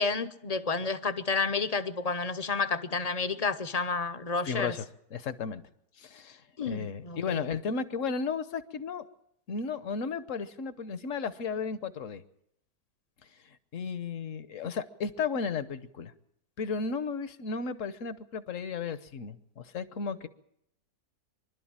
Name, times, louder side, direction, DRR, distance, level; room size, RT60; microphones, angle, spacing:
voice 1, 0.0-4.7 6.6-7.4, left 4 dB, 35° left, 0.7 m, -30 dB
voice 2, 4.5-4.8 5.1-5.6 6.0-9.0 9.5-12.2 13.2-16.1 16.6-20.3, left 5 dB, 60° left, 1.3 m, -34 dB
25.0 x 12.0 x 8.8 m
omnidirectional pair, 1.6 m